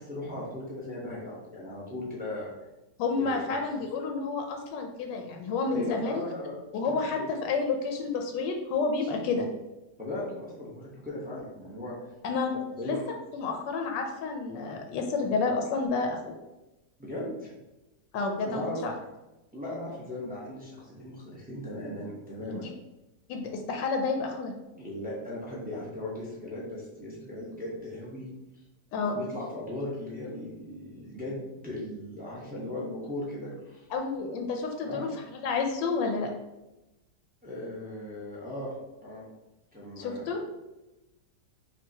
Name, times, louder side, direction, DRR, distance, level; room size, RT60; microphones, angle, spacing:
voice 1, 0.0-2.5 3.1-3.8 5.7-6.6 6.9-7.3 9.3-9.4 10.0-11.9 12.8-13.0 17.0-17.5 18.4-18.8 19.5-22.7 24.7-28.3 29.0-33.9 34.8-35.1 37.4-39.2 39.7-40.3, left 1 dB, 10° right, -5 dB, 0.4 m, -38 dB
voice 2, 3.0-6.2 6.7-9.5 12.2-13.0 13.3-16.3 18.1-18.9 22.5-22.7 23.3-24.5 28.9-29.2 33.9-36.3 40.0-40.4, left 4 dB, 85° left, 3 dB, 1.3 m, -30 dB
5.3 x 2.5 x 2.8 m, 1.0 s
omnidirectional pair, 1.9 m